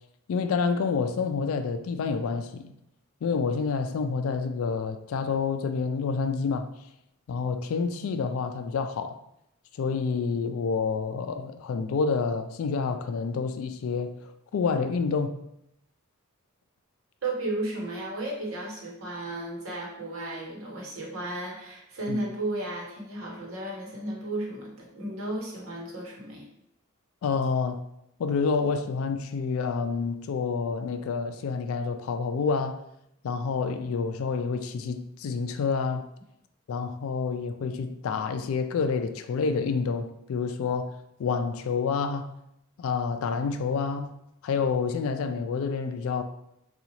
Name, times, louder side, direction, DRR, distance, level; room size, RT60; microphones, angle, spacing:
voice 1, 0.3-2.7 3.2-6.7 7.3-9.2 9.8-14.2 14.5-15.4 22.1-22.3 27.2-27.8 28.2-32.8 33.2-36.1 36.7-40.9 41.2-42.3 42.8-44.1 44.4-46.2, left 5 dB, 70° left, 0.3 m, -28 dB
voice 2, 17.2-26.5, right 2 dB, 75° right, 1.0 m, -34 dB
3.9 x 2.4 x 2.9 m
head